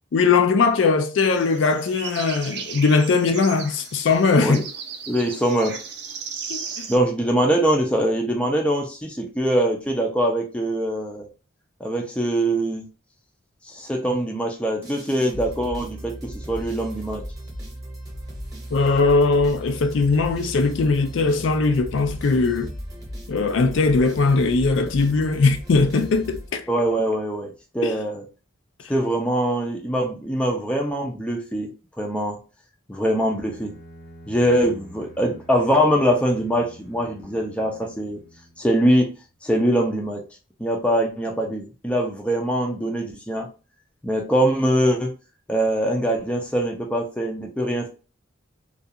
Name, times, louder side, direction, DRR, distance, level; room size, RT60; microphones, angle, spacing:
voice 1, 0.1-4.6 6.5-6.9 18.7-22.7 23.3-26.7 27.8-28.0, left 4 dB, 70° left, 0.4 m, -20 dB
sound 1, 1.3-7.0, right 6 dB, 55° right, 0.5 m, -36 dB
voice 2, 5.1-5.8 6.9-11.3 11.8-12.8 13.7-17.2 26.7-28.2 28.9-31.7 32.0-32.4 32.9-33.7 34.3-38.2 38.6-39.1 39.4-40.2 40.6-43.5 44.0-45.1 45.5-47.9, equal, 5° left, 0.4 m, -23 dB
sound 2, 14.8-26.9, equal, 20° right, 0.9 m, -37 dB
Bowed string instrument, 33.2-39.0, right 1 dB, 85° left, 1.0 m, -48 dB
2.4 x 2.4 x 2.6 m
head